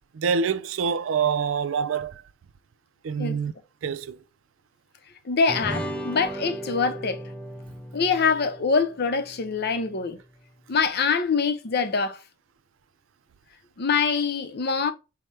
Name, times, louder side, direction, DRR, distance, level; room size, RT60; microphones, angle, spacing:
voice 1, 0.1-2.2 3.0-3.5 3.8-4.2, right 6 dB, 75° right, 0.4 m, -26 dB
voice 2, 5.2-7.2 7.9-10.2 10.7-12.2 13.8-14.9, left 5 dB, 55° left, 0.6 m, -24 dB
sound 1, 5.5-10.2, right 1 dB, 5° left, 0.6 m, -36 dB
4.6 x 2.2 x 4.2 m
head